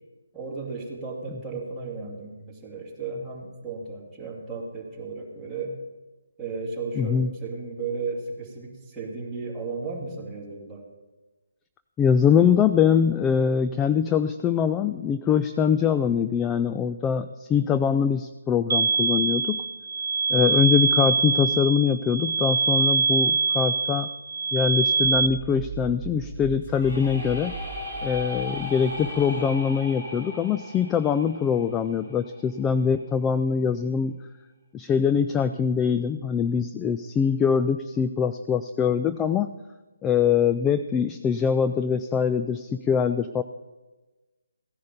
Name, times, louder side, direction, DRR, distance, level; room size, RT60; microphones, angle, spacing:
voice 1, 0.3-5.8 6.4-10.8, right 4 dB, 5° right, -6 dB, 2.5 m, -34 dB
voice 2, 7.0-7.3 12.0-19.6 20.3-24.1 24.5-27.5 28.0-34.1 34.7-39.5 40.0-43.4, left 7 dB, 10° left, 10 dB, 0.3 m, -23 dB
sound 1, 18.7-25.3, right 5 dB, 60° right, 0.5 m, -24 dB
sound 2, 25.0-29.8, right 5 dB, 20° right, 1.5 m, -39 dB
sound 3, 26.6-32.5, left 2 dB, 30° left, 4.1 m, -37 dB
15.5 x 10.5 x 5.2 m, 1.2 s
figure-of-eight pair, 150°, 0 cm